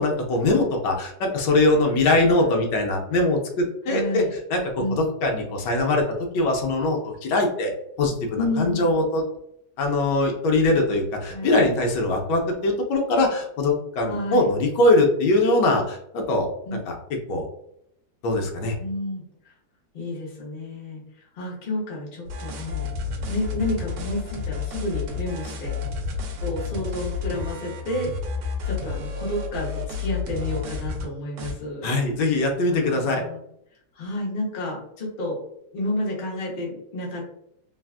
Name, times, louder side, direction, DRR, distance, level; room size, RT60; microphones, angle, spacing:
voice 1, 0.0-6.0 6.3-7.7 8.0-9.2 9.8-16.9 17.3-17.4 18.2-18.8 31.8-33.2, left 2 dB, 80° left, 2 dB, 1.2 m, -22 dB
voice 2, 2.2-2.6 3.9-4.3 4.8-5.0 8.3-8.9 11.3-11.5 14.0-14.5 16.7-16.8 18.8-19.2 19.9-21.0 21.4-22.9 23.3-25.8 26.4-28.1 28.6-31.9 32.7-33.4 33.9-35.4 35.7-37.2, left 1 dB, 45° left, -3 dB, 0.7 m, -30 dB
sound 1, 22.3-31.1 31.4-31.5, left 5 dB, 75° right, 1.2 m, -31 dB
3.3 x 2.3 x 2.3 m, 0.74 s
omnidirectional pair, 1.9 m